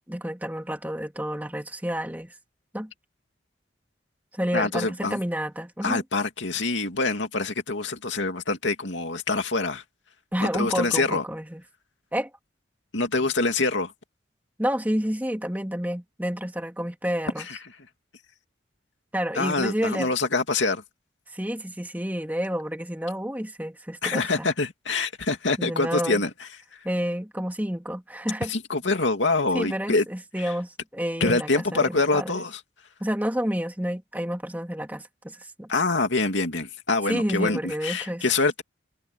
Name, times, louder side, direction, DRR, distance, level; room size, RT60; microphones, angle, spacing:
voice 1, 0.1-2.3 2.7-2.9 4.3-6.0 10.3-11.6 12.1-12.3 14.6-17.5 19.1-20.1 21.3-24.5 25.6-26.2 26.8-28.5 29.5-32.4 33.0-35.7 37.1-38.2, equal, 10° right, 2.7 m, -29 dB
voice 2, 4.5-5.2 5.8-9.8 10.5-11.2 12.9-13.9 17.5-17.6 19.3-20.8 24.0-26.3 28.5-30.0 31.2-32.6 35.7-38.6, left 3 dB, 75° left, 2.5 m, -25 dB
head